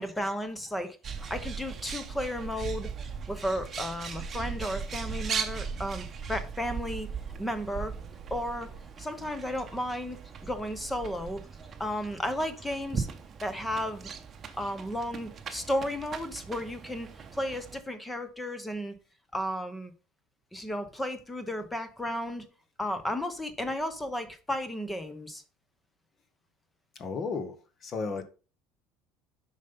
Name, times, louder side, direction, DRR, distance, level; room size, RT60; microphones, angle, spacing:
voice 1, 0.0-2.9 3.3-7.1 7.4-7.9 8.3-8.7 9.0-11.4 11.8-13.1 13.4-14.1 14.6-18.9 19.3-19.9 20.5-22.5 22.8-25.4, equal, 5° left, 0.9 m, -33 dB
Bird, 1.0-17.8, right 6 dB, 25° right, 1.0 m, -39 dB
voice 2, 26.9-27.6 27.8-28.2, left 4 dB, 30° left, 1.2 m, -33 dB
7.3 x 5.6 x 5.4 m
cardioid pair, 165°, 0 cm